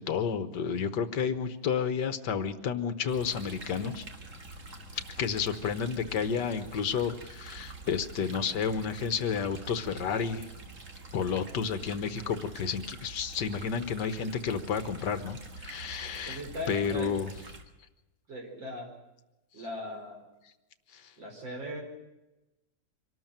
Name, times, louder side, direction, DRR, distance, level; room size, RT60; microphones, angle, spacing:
voice 1, 0.0-4.0 5.2-10.5 11.1-16.4 16.7-17.3 20.9-21.1, left 6 dB, 70° left, 12 dB, 1.7 m, -31 dB
sound 1, 3.1-17.6, right 2 dB, 45° right, 2.3 m, -46 dB
voice 2, 16.2-17.1 18.3-18.9 19.5-20.3 21.2-21.8, left 1 dB, 85° right, 1 dB, 5.3 m, -39 dB
24.5 x 13.0 x 9.0 m, 1.0 s
omnidirectional pair, 2.0 m